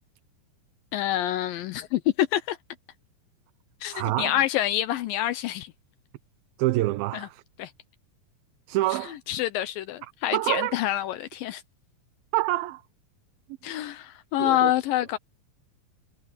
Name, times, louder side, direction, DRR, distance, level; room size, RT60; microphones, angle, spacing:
voice 1, 0.9-2.6 3.8-5.7 7.1-7.3 7.6-7.7 9.3-11.6 13.6-15.2, left 13 dB, 75° left, 2.4 m, -27 dB
voice 2, 3.9-4.4 6.6-7.4 8.7-9.2 10.3-10.8 12.3-12.8 14.4-14.7, right 17 dB, 80° right, 2.6 m, -26 dB
omnidirectional pair, 4.2 m